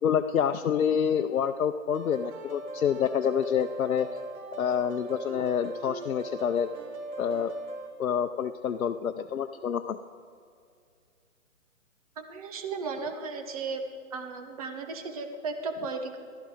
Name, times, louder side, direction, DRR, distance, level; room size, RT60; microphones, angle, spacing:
voice 1, 0.0-4.1 4.6-6.7 7.2-7.5 8.0-10.0, left 8 dB, 90° left, 7 dB, 0.7 m, -27 dB
sound 1, 1.9-7.9, right 2 dB, 90° right, 3.5 m, -40 dB
voice 2, 12.2-13.8 14.1-16.2, right 4 dB, 25° right, 6 dB, 0.9 m, -35 dB
15.0 x 13.0 x 5.0 m, 2.3 s
hypercardioid pair, 160°, 41 cm